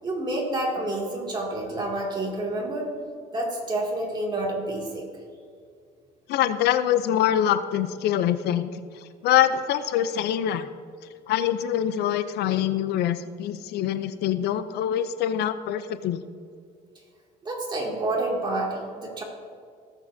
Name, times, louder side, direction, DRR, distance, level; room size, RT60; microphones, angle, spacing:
voice 1, 0.0-2.9 3.3-5.0 17.4-19.2, right 1 dB, 25° right, -2 dB, 2.4 m, -28 dB
voice 2, 6.3-10.7 11.3-16.2, left 10 dB, 75° left, 12 dB, 0.5 m, -24 dB
17.5 x 7.2 x 2.7 m, 2.2 s
cardioid pair, 110°, 17 cm